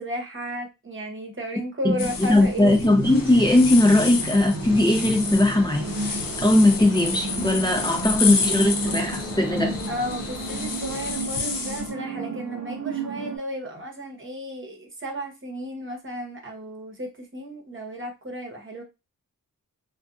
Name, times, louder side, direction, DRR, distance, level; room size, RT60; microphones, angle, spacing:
voice 1, 0.0-2.8 9.9-18.8, equal, 35° right, 0.9 m, -33 dB
voice 2, 1.8-5.9 6.4-9.8, left 2 dB, 15° left, 0.6 m, -19 dB
sound 1, 2.0-11.9, left 5 dB, 80° left, 0.7 m, -31 dB
sound 2, 2.6-13.4, right 3 dB, 60° right, 0.7 m, -33 dB
sound 3, 3.0-11.2, left 3 dB, 45° left, 0.8 m, -40 dB
2.5 x 2.3 x 2.4 m
cardioid pair, 65°, 34 cm